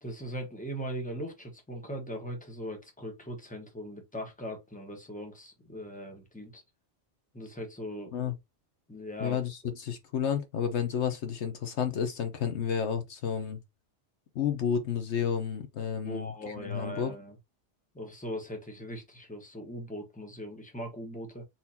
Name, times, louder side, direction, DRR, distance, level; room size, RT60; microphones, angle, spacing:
voice 1, 0.0-6.6 7.3-8.1 8.9-9.4 16.0-17.4 17.9-21.4, equal, 5° left, 1.3 m, -40 dB
voice 2, 9.2-13.6 14.3-16.3 16.6-17.2, left 7 dB, 70° left, 1.1 m, -31 dB
4.3 x 4.1 x 2.8 m
omnidirectional pair, 1.2 m